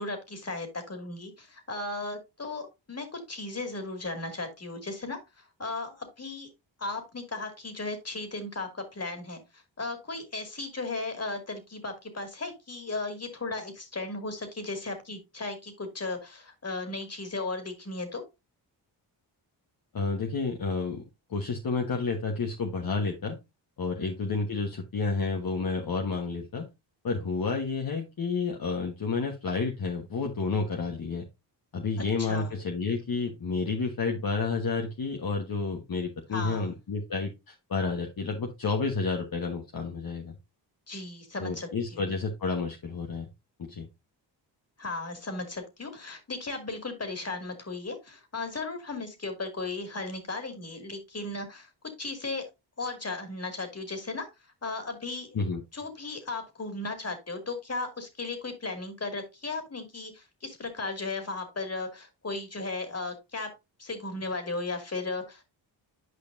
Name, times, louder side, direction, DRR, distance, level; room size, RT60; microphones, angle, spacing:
voice 1, 0.0-6.5 6.8-18.2 23.9-24.1 32.0-32.5 36.3-36.7 40.9-42.0 44.8-51.7 52.0-52.4 52.8-54.3 54.6-55.4 55.7-63.5 63.8-65.4, left 3 dB, 35° left, 6 dB, 2.5 m, -36 dB
voice 2, 19.9-21.0 21.3-23.4 23.8-26.7 27.0-31.2 31.7-40.3 41.4-43.3 43.6-43.9 55.3-55.6, left 4 dB, 50° left, 2 dB, 1.3 m, -30 dB
9.6 x 5.2 x 2.7 m, 0.23 s
cardioid pair, 55°, 45 cm